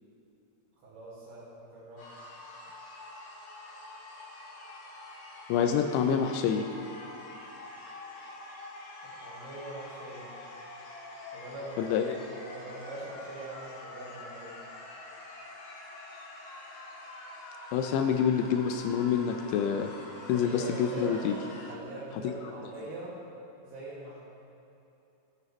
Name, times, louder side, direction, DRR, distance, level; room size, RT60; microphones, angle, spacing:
voice 1, 0.8-2.1 9.0-10.3 11.3-12.1 12.5-14.6 20.2-21.2 21.5-23.2 23.6-24.2, right 2 dB, 70° right, -11 dB, 3.9 m, -42 dB
sound 1, 2.0-21.7, left 2 dB, 60° left, 2.1 m, -46 dB
voice 2, 5.5-6.6 11.8-12.2 17.7-19.9 20.3-21.4 22.2-22.3, left 7 dB, 85° left, 4 dB, 2.7 m, -27 dB
16.0 x 9.2 x 3.1 m, 2.9 s
omnidirectional pair, 4.9 m